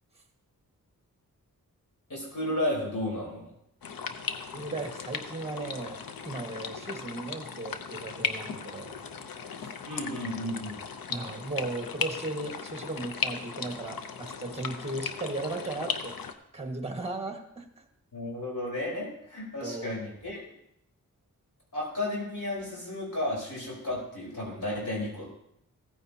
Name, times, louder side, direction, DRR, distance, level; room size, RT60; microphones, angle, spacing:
voice 1, 2.1-3.5 9.8-10.8 18.1-20.4 21.7-25.3, left 1 dB, 55° left, -4 dB, 4.3 m, -33 dB
sound 1, 3.8-16.3, left 6 dB, 80° left, 0.8 m, -37 dB
voice 2, 4.5-9.0 9.6-9.7 11.1-16.2 16.5-17.8 19.6-19.9, right 2 dB, 20° right, 2 dB, 1.6 m, -36 dB
15.5 x 9.3 x 2.8 m, 0.77 s
wide cardioid pair, 90°, 34 cm